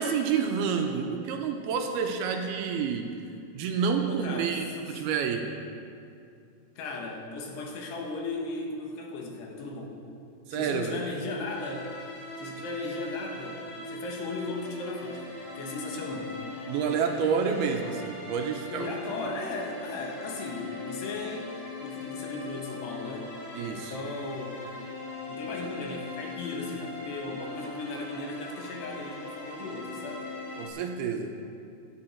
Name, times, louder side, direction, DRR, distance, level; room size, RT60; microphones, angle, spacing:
voice 1, 0.0-3.1 3.5-5.5 10.5-11.0 16.7-18.9 23.5-24.0 30.6-31.3, right 6 dB, 80° right, 4 dB, 2.5 m, -29 dB
voice 2, 4.1-4.6 6.8-10.0 10.5-11.9 12.4-16.4 18.6-23.3 23.7-24.6 25.3-30.3, left 3 dB, 75° left, 1 dB, 3.6 m, -36 dB
sound 1, 11.5-30.7, left 3 dB, 40° left, 3.1 m, -41 dB
17.5 x 11.0 x 4.5 m, 2.5 s
omnidirectional pair, 4.9 m